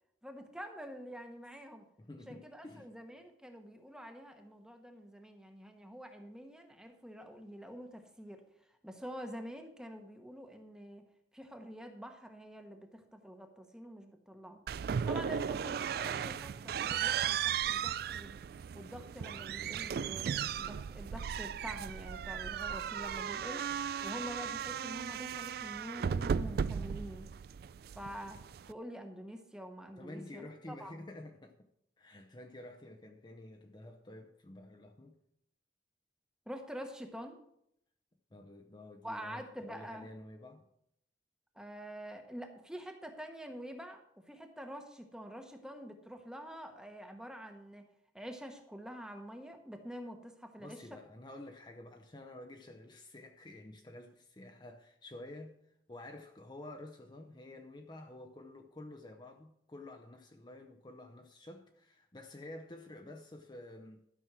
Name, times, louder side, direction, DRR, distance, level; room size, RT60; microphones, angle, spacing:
voice 1, 0.2-1.8 2.3-8.4 8.8-11.0 11.3-14.6 15.0-18.4 18.7-23.7 24.0-27.3 28.0-28.4 28.7-30.9 36.5-37.4 39.0-40.1 41.5-47.9 48.1-50.8, equal, 5° right, 1.1 m, -46 dB
voice 2, 2.0-2.9 30.0-31.7 32.0-35.2 38.3-40.6 50.6-55.6 55.9-64.0, left 1 dB, 25° left, 0.7 m, -50 dB
sound 1, 14.7-28.7, right 7 dB, 60° right, 0.3 m, -36 dB
12.5 x 6.2 x 6.1 m
head